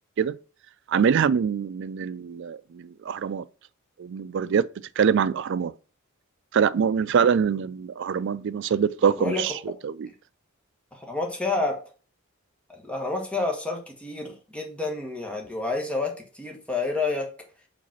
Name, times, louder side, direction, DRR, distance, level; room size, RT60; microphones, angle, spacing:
voice 1, 0.9-3.4 4.0-4.7 5.0-5.7 6.5-10.1, right 7 dB, 55° right, 0.3 m, -24 dB
voice 2, 10.9-11.8 12.7-17.3, left 3 dB, 5° left, 1.3 m, -29 dB
5.1 x 4.0 x 5.8 m
head